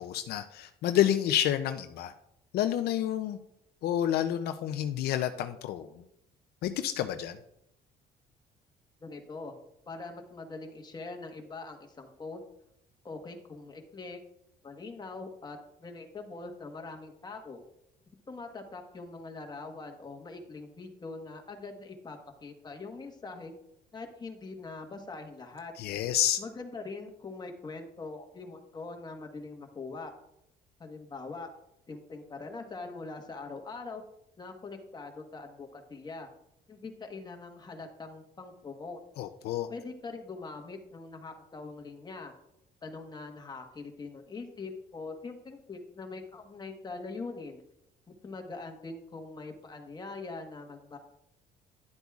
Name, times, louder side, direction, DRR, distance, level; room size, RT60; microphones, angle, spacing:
voice 1, 0.0-2.1 2.5-3.4 3.8-6.0 6.6-7.4 25.8-26.4 39.2-39.7, left 11 dB, 70° left, 9 dB, 0.5 m, -29 dB
voice 2, 9.0-9.5 9.9-12.4 13.0-14.2 14.6-17.6 18.3-23.5 23.9-25.7 26.4-30.1 30.8-31.5 31.9-34.0 34.4-36.3 36.7-39.0 39.7-42.3 42.8-47.6 48.2-51.0, left 3 dB, 25° left, 4 dB, 1.3 m, -42 dB
11.0 x 7.9 x 2.4 m, 0.81 s
cardioid pair, 110°, 17 cm